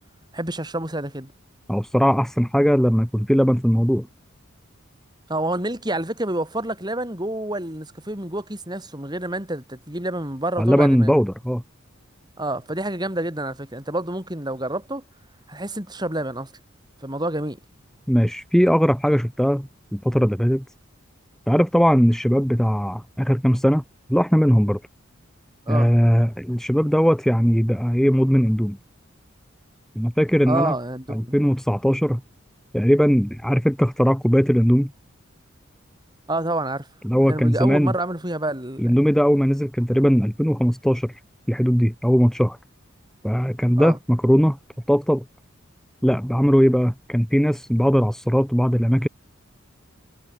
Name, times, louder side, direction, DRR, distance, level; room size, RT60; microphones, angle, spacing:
voice 1, 0.3-1.3 5.3-11.1 12.4-15.0 15.5-16.5 17.0-17.6 25.7-25.9 30.5-31.4 36.3-36.9 37.1-38.9 43.8-44.0, right 1 dB, 20° right, 5.3 m, -28 dB
voice 2, 1.7-4.1 10.6-11.6 18.1-20.6 21.5-23.8 24.1-24.8 25.7-28.8 30.0-30.7 31.1-32.2 32.7-34.9 37.0-37.9 38.8-41.2 41.5-42.6 43.2-44.6 44.9-45.2 46.0-49.1, equal, ahead, 1.9 m, -19 dB
head